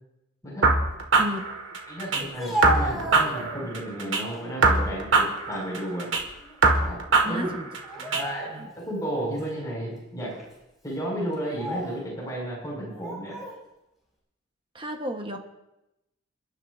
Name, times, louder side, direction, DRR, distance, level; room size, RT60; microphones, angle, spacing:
sound 1, 0.6-2.2 2.6-4.2 4.6-6.2 6.6-8.2, right 3 dB, 85° right, 1.9 m, -22 dB
voice 1, 1.9-6.1 6.8-7.0 7.2-7.5 8.2-10.4 10.8-13.4, right 1 dB, 20° left, -3 dB, 5.8 m, -33 dB
Speech, 2.2-3.8 4.3-4.9 5.3-6.6 6.8-7.0 7.8-8.8 9.4-9.5 10.3-10.5 11.3-12.0 12.9-13.6, right 1 dB, ahead, 5.8 m, -34 dB
voice 2, 7.2-7.7 8.0-8.2 8.4-8.7 9.3-9.4 14.7-15.4, equal, 25° right, 4 dB, 1.3 m, -33 dB
29.0 x 11.5 x 2.7 m, 0.92 s
head